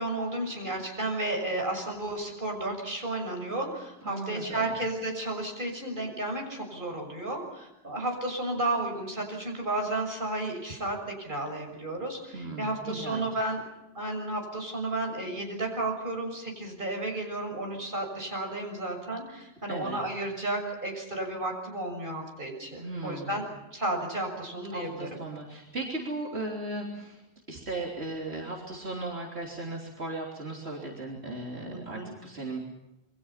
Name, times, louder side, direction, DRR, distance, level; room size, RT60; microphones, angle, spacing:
voice 1, 0.0-13.6 13.9-23.4 23.7-25.1 31.7-32.1, right 2 dB, 50° right, 2 dB, 6.8 m, -33 dB
voice 2, 4.0-4.7 12.3-13.2 19.7-20.0 22.8-23.4 24.7-27.2 27.5-32.6, right 2 dB, 80° right, -1 dB, 3.7 m, -36 dB
28.0 x 23.5 x 5.8 m, 0.93 s
omnidirectional pair, 1.1 m